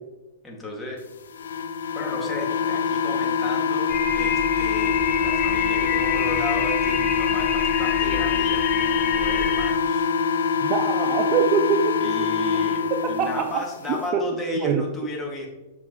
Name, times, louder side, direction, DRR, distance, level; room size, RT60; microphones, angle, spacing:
voice 1, 0.4-1.0 1.9-10.1 12.0-15.5, left 1 dB, 10° left, -2 dB, 2.1 m, -34 dB
sound 1, 1.3-13.4, left 6 dB, 65° left, 0.6 m, -24 dB
sound 2, 3.9-9.7, left 9 dB, 35° left, 0.8 m, -28 dB
voice 2, 10.6-12.0 12.9-14.2 14.6-14.8, right 7 dB, 35° right, 7 dB, 0.6 m, -24 dB
7.3 x 7.0 x 3.1 m, 1.1 s
figure-of-eight pair, 105°, 0 cm